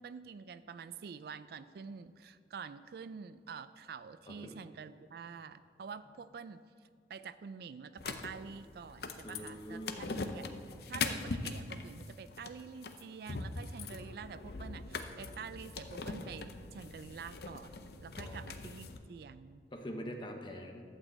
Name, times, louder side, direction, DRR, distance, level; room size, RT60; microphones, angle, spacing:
voice 1, 0.0-6.6 7.1-10.5 10.9-19.6, right 6 dB, 60° right, 14 dB, 0.3 m, -47 dB
sound 1, 8.0-19.0, left 4 dB, 60° left, 0.6 m, -42 dB
voice 2, 9.2-10.1 18.2-18.4 19.7-20.8, equal, 25° left, 3 dB, 1.0 m, -44 dB
12.0 x 5.0 x 7.6 m, 2.1 s
head